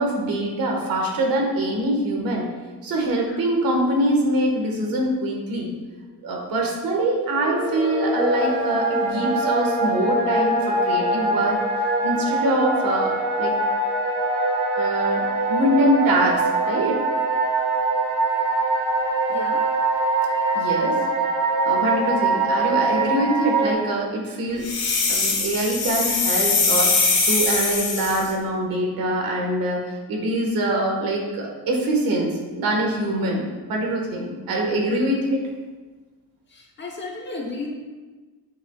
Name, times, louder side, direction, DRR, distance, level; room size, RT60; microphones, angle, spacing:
voice 1, 0.0-2.5 2.8-5.7 6.2-11.6 12.0-13.5 14.8-15.2 15.5-17.0 20.6-21.0 21.7-24.7 25.1-35.5, right 1 dB, 65° right, 0 dB, 1.7 m, -24 dB
sound 1, 7.2-23.7, right 2 dB, 90° right, 2.0 m, -23 dB
voice 2, 19.3-19.6 36.5-37.7, left 3 dB, 30° left, -1 dB, 1.0 m, -34 dB
sound 2, 24.6-28.3, left 4 dB, 85° left, 2.3 m, -22 dB
8.9 x 6.7 x 2.4 m, 1.3 s
cardioid pair, 165°, 38 cm